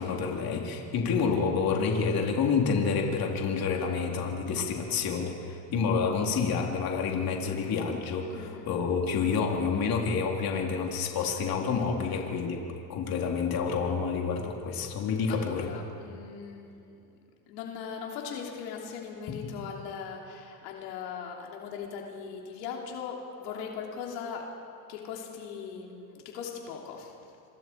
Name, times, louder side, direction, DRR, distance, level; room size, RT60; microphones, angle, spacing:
voice 1, 0.0-12.6 12.9-15.7 19.3-19.4, left 5 dB, 45° left, 0 dB, 3.6 m, -28 dB
voice 2, 8.3-8.7 15.3-17.0 17.5-24.5 24.9-27.1, left 6 dB, 85° left, 0 dB, 3.3 m, -39 dB
26.0 x 25.5 x 4.7 m, 2.6 s
supercardioid pair, 110°, 47 cm